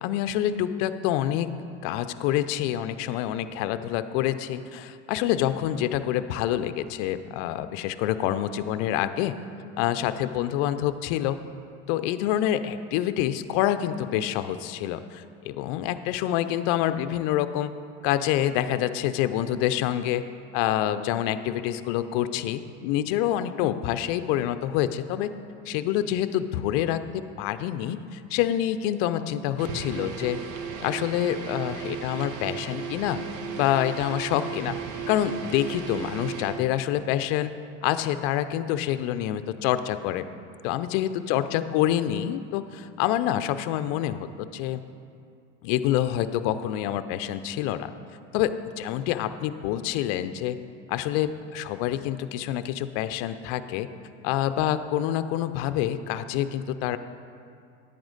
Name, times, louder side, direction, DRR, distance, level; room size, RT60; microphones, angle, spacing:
voice 1, 0.0-1.5 1.8-9.4 9.8-11.4 11.9-17.7 18.0-20.2 20.5-25.3 25.7-30.4 30.8-33.2 33.6-34.8 35.1-37.5 37.8-40.2 40.6-44.8 45.6-47.9 48.3-50.6 50.9-53.9 54.2-57.0, left 12 dB, 65° left, 11 dB, 0.6 m, -27 dB
sound 1, 29.6-36.7, right 6 dB, 55° right, 1.1 m, -35 dB
10.5 x 8.8 x 4.0 m, 2.4 s
hypercardioid pair, 85°, 37 cm